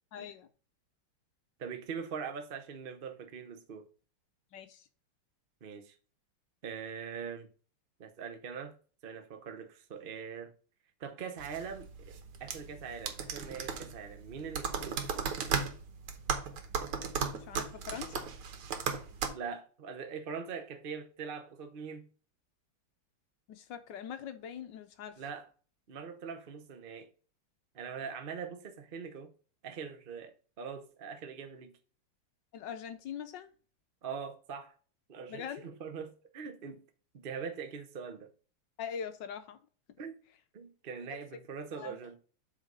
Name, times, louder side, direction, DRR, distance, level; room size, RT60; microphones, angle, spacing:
voice 1, 0.1-0.5 4.5-4.9 17.3-18.2 23.5-25.2 32.5-33.5 35.3-35.7 38.8-39.6 41.7-42.0, left 8 dB, 65° left, 1.2 m, -42 dB
voice 2, 1.6-3.8 5.6-6.0 6.6-7.5 8.0-8.7 9.0-10.5 11.0-12.1 12.4-15.3 19.3-22.1 25.2-25.5 25.9-27.1 27.7-29.3 29.6-31.7 34.0-34.7 35.1-36.8 37.1-38.3 40.0-40.1 40.5-42.2, right 6 dB, 45° right, 0.7 m, -42 dB
sound 1, 11.4-19.3, right 6 dB, 75° right, 1.9 m, -36 dB
7.9 x 4.0 x 5.5 m
omnidirectional pair, 2.4 m